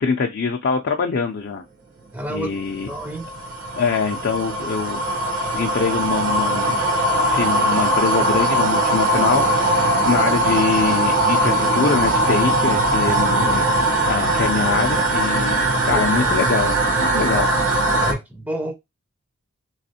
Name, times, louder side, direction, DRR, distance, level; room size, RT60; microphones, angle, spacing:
voice 1, 0.0-1.6 2.3-2.9 3.8-5.0 5.5-6.8 7.3-17.5, left 5 dB, 50° left, 0.4 m, -24 dB
voice 2, 2.1-2.5 2.9-3.2 15.7-16.3 18.0-18.7, right 1 dB, 5° right, 0.5 m, -29 dB
sound 1, 2.6-18.1, right 1 dB, 75° right, 1.1 m, -20 dB
3.4 x 3.1 x 2.8 m
head